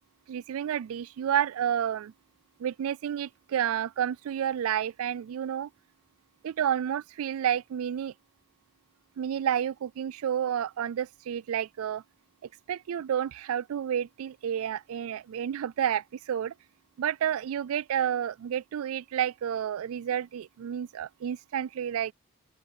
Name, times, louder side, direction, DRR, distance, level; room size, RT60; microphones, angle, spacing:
voice 1, 0.3-2.1 2.6-5.7 6.4-8.1 9.2-12.0 12.7-16.5 17.0-22.1, right 9 dB, 75° right, 0.3 m, -30 dB
open air
head